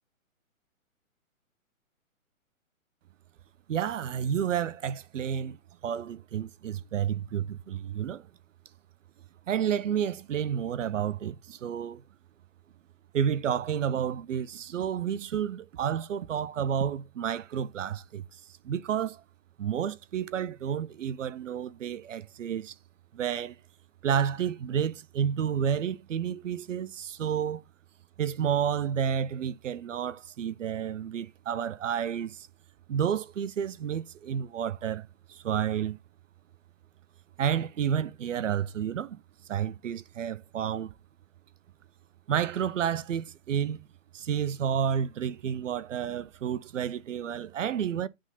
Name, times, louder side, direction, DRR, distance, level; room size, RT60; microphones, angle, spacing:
voice 1, 3.7-8.3 9.5-12.0 13.1-19.2 19.6-22.7 23.1-23.6 24.0-27.6 28.2-32.5 32.9-36.0 37.4-39.2 39.5-40.9 42.3-43.8 44.1-48.1, right 8 dB, 60° right, 0.8 m, -30 dB
8.9 x 3.8 x 5.6 m
hypercardioid pair, 135°, 42 cm